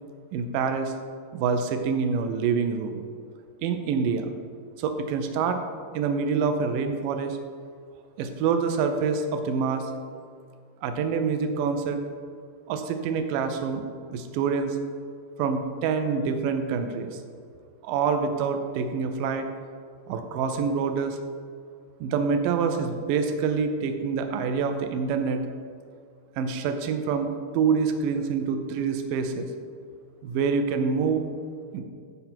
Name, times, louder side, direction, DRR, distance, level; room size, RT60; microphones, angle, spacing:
voice 1, 0.3-0.9 1.3-3.0 3.6-4.3 4.8-5.6 5.9-7.4 8.2-9.9 10.8-12.0 12.7-13.8 14.1-14.8 15.4-17.2 17.8-19.5 20.1-21.2 22.0-25.4 26.4-27.3 27.5-29.5 30.2-31.3 31.7-31.8, right 5 dB, 80° right, 7 dB, 2.0 m, -26 dB
14.0 x 5.5 x 4.4 m, 2.2 s
omnidirectional pair, 4.6 m